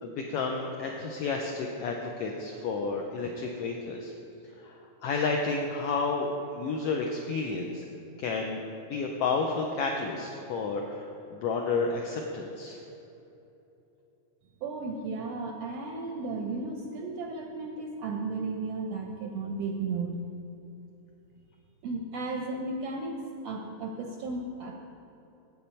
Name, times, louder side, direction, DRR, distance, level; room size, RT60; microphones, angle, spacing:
voice 1, 0.0-4.1 4.6-7.8 8.2-8.6 8.9-12.8, left 4 dB, 85° left, 1 dB, 1.3 m, -31 dB
voice 2, 14.6-20.2 21.8-24.7, right 3 dB, 80° right, 2 dB, 1.4 m, -34 dB
8.5 x 7.9 x 4.3 m, 2.9 s
omnidirectional pair, 3.4 m